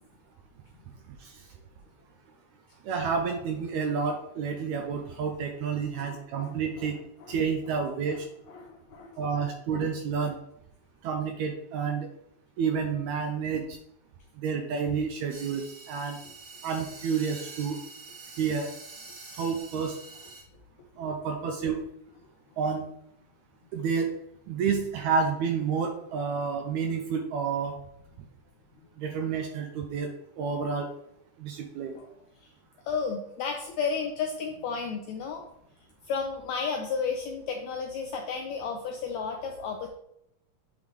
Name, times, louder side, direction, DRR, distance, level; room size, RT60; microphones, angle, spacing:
voice 1, 2.9-7.0 7.3-8.3 9.2-10.4 11.0-12.1 12.6-13.6 14.4-16.2 16.6-17.8 18.4-18.7 19.4-20.0 21.0-21.8 22.6-22.9 23.7-24.2 24.5-27.7 29.0-30.1 30.4-30.9 31.4-31.9, right 6 dB, 80° right, 4 dB, 1.7 m, -29 dB
voice 2, 5.9-6.9 7.2-7.4 8.1-8.2 8.5-9.5 9.7-9.9 10.1-10.3 31.9-32.1 32.4-32.5 32.8-35.4 36.1-39.9, left 5 dB, 80° left, 3 dB, 1.6 m, -33 dB
sound 1, 15.3-20.4, right 3 dB, 55° right, 1.7 m, -46 dB
8.7 x 3.8 x 3.2 m, 0.75 s
omnidirectional pair, 3.8 m